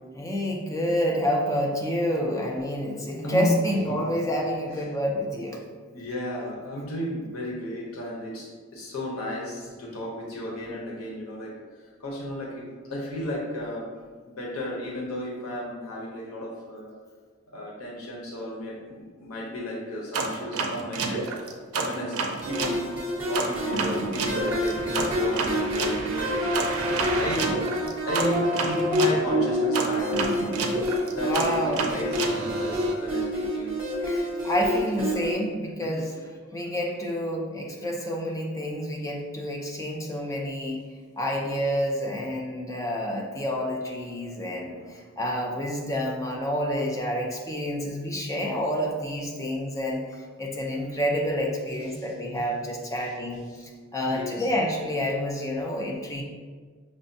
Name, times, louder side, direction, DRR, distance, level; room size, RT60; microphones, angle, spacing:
voice 1, 0.1-5.6 31.2-31.9 34.0-36.1 36.5-40.8 41.2-50.0 50.4-56.2, equal, 15° left, -1 dB, 0.5 m, -28 dB
voice 2, 5.9-11.5 12.0-13.9 14.3-16.9 17.5-22.8 23.2-26.4 27.2-30.4 31.1-33.8 35.8-35.9 44.3-44.4 44.8-45.0 51.9-52.1 53.0-53.1 54.1-54.5, left 1 dB, 90° left, -3 dB, 0.7 m, -34 dB
sound 1, 20.1-22.8 23.3-29.2 29.7-32.9, right 3 dB, 85° right, 0.4 m, -30 dB
sound 2, 22.4-35.3, equal, 10° right, 0.9 m, -28 dB
6.1 x 2.2 x 2.6 m, 1.5 s
head